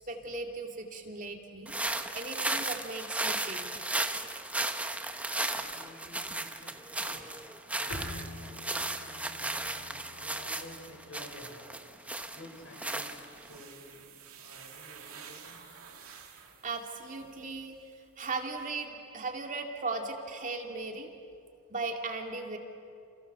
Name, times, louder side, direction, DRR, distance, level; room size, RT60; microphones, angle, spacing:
voice 1, 0.1-1.7 2.1-3.9 7.9-8.1 16.6-17.8 18.2-21.1 21.7-22.6, right 3 dB, 40° right, 3 dB, 2.4 m, -37 dB
sound 1, 1.7-13.6, right 2 dB, 5° right, 1.1 m, -35 dB
voice 2, 4.8-16.7 17.3-17.7, left 1 dB, 60° left, 2 dB, 6.3 m, -53 dB
Bowed string instrument, 7.9-11.4, left 1 dB, 90° left, 3.7 m, -46 dB
sound 2, 11.8-17.9 18.3-18.9, right 7 dB, 80° right, 2.3 m, -52 dB
30.0 x 28.5 x 6.7 m, 2.4 s
head